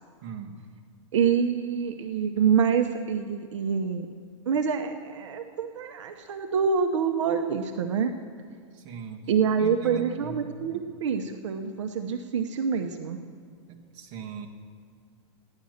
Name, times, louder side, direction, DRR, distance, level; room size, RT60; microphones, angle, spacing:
voice 1, 0.2-0.6 8.7-9.3 9.6-10.4 10.7-10.8 13.7-14.5, right 7 dB, 35° right, 1 dB, 1.3 m, -39 dB
voice 2, 1.1-4.1 4.5-8.1 9.3-13.2, right 6 dB, 70° right, 6 dB, 0.8 m, -26 dB
15.0 x 10.5 x 6.4 m, 2.2 s
supercardioid pair, 165°, 16 cm